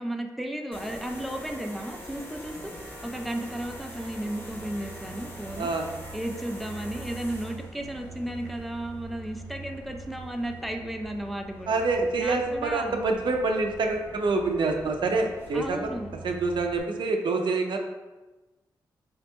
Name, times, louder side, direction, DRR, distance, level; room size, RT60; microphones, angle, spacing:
voice 1, 0.0-2.7 3.0-5.7 6.1-11.7 12.2-13.0 15.5-16.2, right 1 dB, ahead, 3 dB, 0.5 m, -34 dB
sound 1, 0.7-16.8, right 2 dB, 25° left, 1.0 m, -43 dB
voice 2, 11.7-15.9 16.2-17.8, right 3 dB, 65° right, 3 dB, 0.5 m, -26 dB
5.0 x 2.7 x 2.2 m, 1.2 s
supercardioid pair, 45°, 9 cm